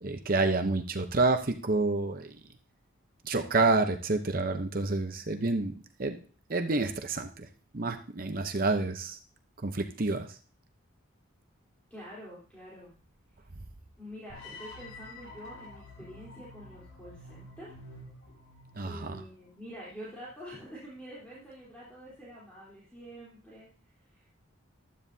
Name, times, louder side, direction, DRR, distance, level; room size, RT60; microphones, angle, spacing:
voice 1, 0.0-2.4 3.2-6.2 6.5-7.5 7.7-9.2 9.6-10.4 18.8-19.2, right 3 dB, 40° right, 6 dB, 0.8 m, -28 dB
voice 2, 11.9-12.9 14.0-17.8 18.8-23.7 24.1-24.3, equal, 5° left, -8 dB, 3.6 m, -47 dB
sound 1, 14.3-19.4, left 2 dB, 70° left, 4.9 m, -49 dB
15.0 x 12.0 x 2.8 m, 0.39 s
head